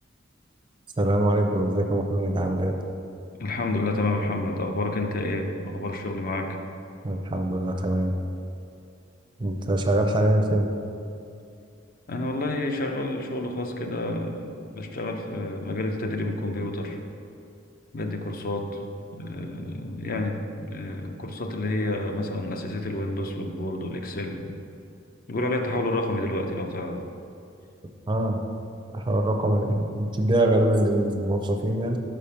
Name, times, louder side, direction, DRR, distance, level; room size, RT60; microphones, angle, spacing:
voice 1, 1.0-2.7 7.0-8.1 9.4-10.7 28.1-28.4 28.9-32.0, right 1 dB, 25° right, 3 dB, 0.5 m, -23 dB
voice 2, 3.4-6.6 12.1-17.0 17.9-24.6 25.3-27.0, left 2 dB, 50° left, 4 dB, 0.6 m, -29 dB
5.1 x 5.0 x 5.7 m, 2.5 s
head